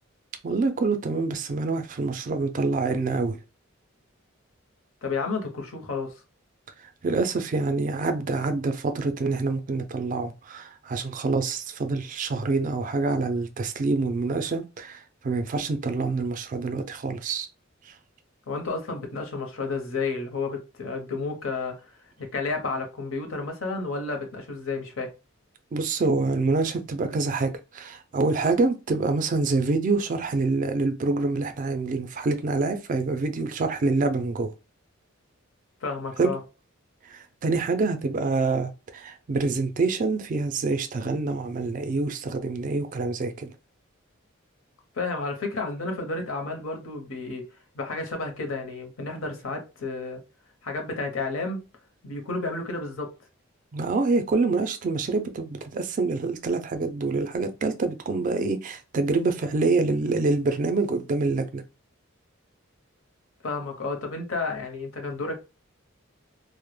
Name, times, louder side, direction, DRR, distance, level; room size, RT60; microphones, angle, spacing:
voice 1, 0.4-3.4 6.8-17.5 17.9-18.0 25.7-34.5 36.2-36.3 37.0-43.5 53.7-61.6, right 3 dB, 40° right, 0.3 m, -26 dB
voice 2, 5.0-6.2 18.5-25.1 35.8-36.4 44.9-47.5 47.7-50.2 50.6-51.6 52.0-53.1 63.4-65.4, left 3 dB, 70° left, 0.7 m, -31 dB
2.1 x 2.0 x 3.0 m
head